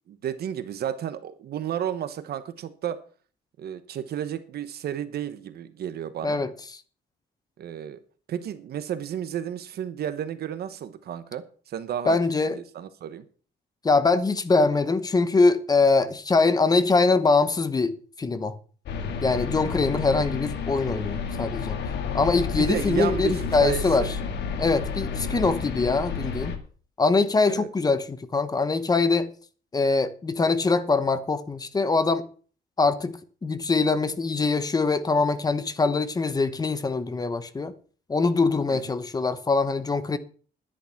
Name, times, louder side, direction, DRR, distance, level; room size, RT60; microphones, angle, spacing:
voice 1, 0.1-3.0 3.6-6.4 7.6-8.0 8.3-12.2 12.5-13.2 22.6-24.1 27.5-27.7 38.7-38.8, right 10 dB, 65° right, 1.1 m, -32 dB
voice 2, 12.1-12.6 13.8-18.6 19.2-21.8 22.1-24.1 24.6-26.5 27.0-29.3 29.7-32.3 32.8-37.7 38.1-40.2, left 3 dB, 20° left, 1.0 m, -23 dB
sound 1, 18.9-26.6, left 6 dB, 85° left, 2.0 m, -31 dB
11.0 x 10.0 x 5.9 m
cardioid pair, 150°, 17 cm